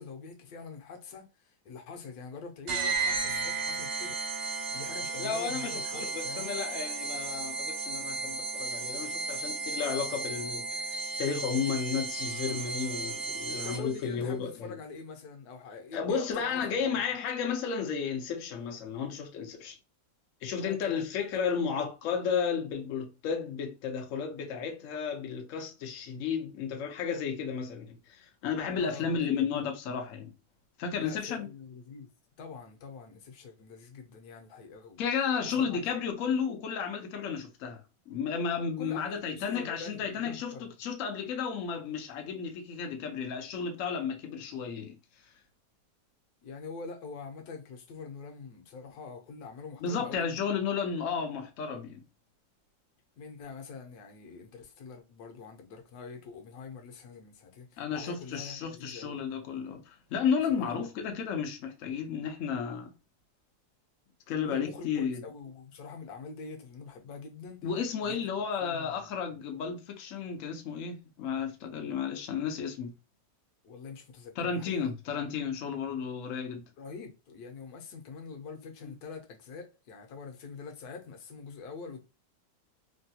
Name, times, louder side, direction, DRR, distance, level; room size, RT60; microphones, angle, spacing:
voice 1, 0.0-4.2 4.7-6.6 13.6-17.0 20.6-21.1 21.8-21.9 28.8-29.5 31.0-32.1 32.4-35.0 35.5-35.8 38.8-40.8 46.4-50.4 53.2-59.2 60.5-60.9 64.4-67.6 68.0-68.2 68.6-69.1 73.6-74.9 76.8-82.0, left 5 dB, 65° left, 1.0 m, -44 dB
sound 1, 2.7-14.1, right 4 dB, 70° right, 1.2 m, -34 dB
voice 2, 5.2-14.8 15.9-19.8 20.4-30.3 30.8-31.5 35.0-37.8 38.1-45.0 49.8-52.0 57.8-62.9 64.3-65.2 67.6-72.9 74.4-76.6 78.8-78.9, left 6 dB, 85° left, 0.7 m, -33 dB
3.2 x 2.2 x 2.7 m
omnidirectional pair, 2.1 m